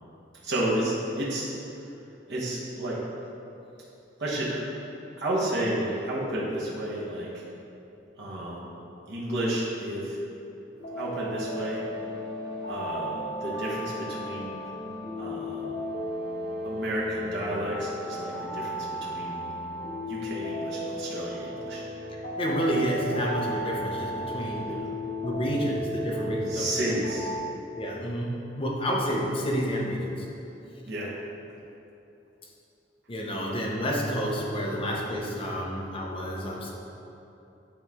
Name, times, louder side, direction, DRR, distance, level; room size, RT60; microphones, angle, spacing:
voice 1, 0.4-1.5 2.3-3.0 4.2-4.7 5.2-7.4 8.2-8.7 9.1-10.2 10.9-11.8 12.6-14.7 15.2-15.8 16.6-19.4 20.0-21.9 24.7-24.9 26.5-27.3 30.8-31.1, right 1 dB, 65° right, -6 dB, 1.0 m, -31 dB
sound 1, 10.8-27.4, left 1 dB, 50° left, 1.0 m, -34 dB
voice 2, 22.4-24.7 25.2-26.7 27.7-30.3 33.1-36.7, equal, 30° left, -2 dB, 0.7 m, -29 dB
8.6 x 3.1 x 3.5 m, 2.9 s
head